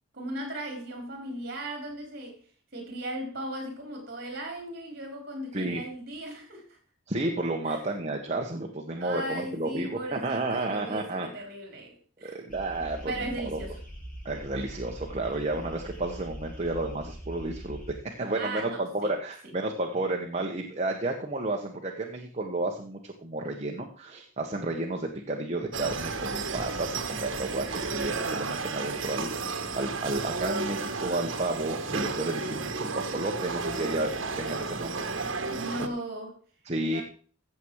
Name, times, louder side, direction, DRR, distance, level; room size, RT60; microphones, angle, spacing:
voice 1, 0.1-2.4 2.7-6.8 7.6-7.9 9.0-13.8 18.3-19.1 35.5-36.3 36.9-37.0, right 1 dB, 50° right, 4.3 m, -37 dB
voice 2, 7.1-11.3 12.2-13.6 14.2-17.8 18.2-34.1 34.4-35.0 35.8-35.9 36.6-37.0, right 2 dB, 35° right, 1.3 m, -32 dB
sound 1, 12.5-17.9, equal, 40° left, 4.8 m, -42 dB
sound 2, 25.7-35.9, right 4 dB, 75° right, 1.4 m, -33 dB
15.5 x 7.3 x 4.8 m
head